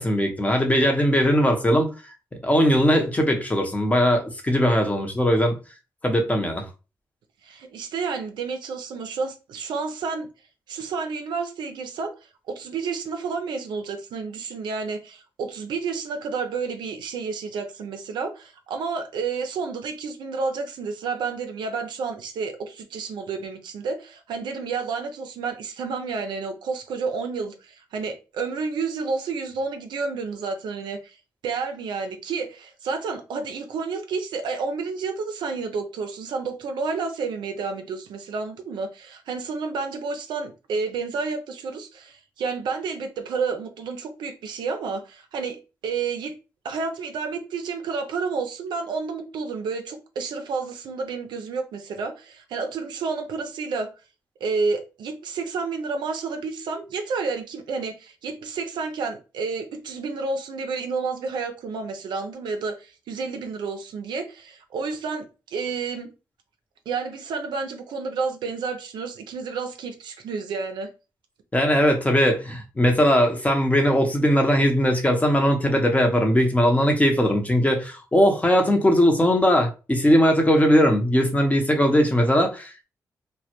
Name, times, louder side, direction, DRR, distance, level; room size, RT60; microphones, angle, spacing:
voice 1, 0.0-1.9 2.4-5.6 6.0-6.7 71.5-82.9, equal, 20° left, 0.7 m, -20 dB
voice 2, 7.4-10.3 10.7-12.1 12.5-31.2 31.4-46.4 46.6-53.9 54.4-66.1 66.9-70.9, right 4 dB, 75° right, 0.4 m, -30 dB
2.1 x 2.0 x 2.8 m
supercardioid pair, 50°, 8 cm